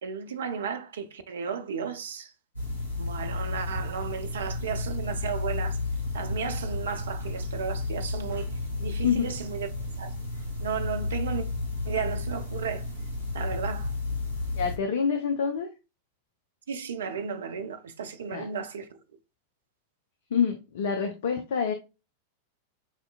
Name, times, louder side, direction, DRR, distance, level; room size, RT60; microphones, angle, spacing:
voice 1, 0.0-2.3 3.0-5.8 6.1-8.5 8.8-9.7 10.0-10.1 10.6-11.5 11.8-12.8 13.3-13.9 16.7-18.9, right 6 dB, 65° right, 0.4 m, -34 dB
sound 1, 2.5-14.8, left 2 dB, 75° left, 1.8 m, -32 dB
voice 2, 14.6-15.7 18.3-18.5 20.3-21.7, left 6 dB, 60° left, 0.4 m, -27 dB
5.0 x 2.6 x 2.3 m
figure-of-eight pair, 90°, 0 cm